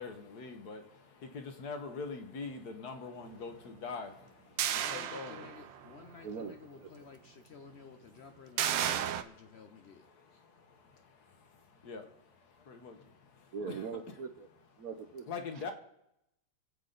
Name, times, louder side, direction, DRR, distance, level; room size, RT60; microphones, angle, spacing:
voice 1, 0.0-4.1 4.7-5.5 6.0-6.1 9.1-9.7 10.0-13.9 15.3-15.7, left 4 dB, 60° left, 6 dB, 1.7 m, -44 dB
voice 2, 4.6-10.4 15.6-15.7, left 6 dB, 80° left, 6 dB, 0.5 m, -54 dB
sound 1, 4.6-5.9 6.3-6.4 8.6-9.2, right 10 dB, 90° right, 1.4 m, -32 dB
voice 3, 6.2-7.1 13.5-14.5 14.8-15.2, right 6 dB, 60° right, 8 dB, 1.1 m, -41 dB
22.5 x 8.2 x 3.9 m, 0.84 s
omnidirectional pair, 2.0 m